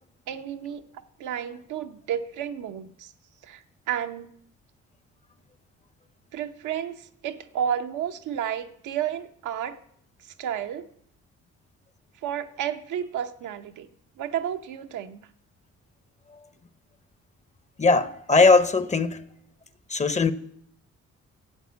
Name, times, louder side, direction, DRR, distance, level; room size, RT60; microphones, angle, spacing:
voice 1, 0.3-0.8 1.2-3.1 3.4-4.3 6.3-9.8 10.2-10.8 12.2-13.9 14.2-15.3, right 9 dB, 80° right, 1.0 m, -31 dB
voice 2, 17.8-19.2 19.9-20.3, left 3 dB, 25° left, 0.8 m, -19 dB
11.0 x 7.8 x 8.1 m
cardioid pair, 90°, 30 cm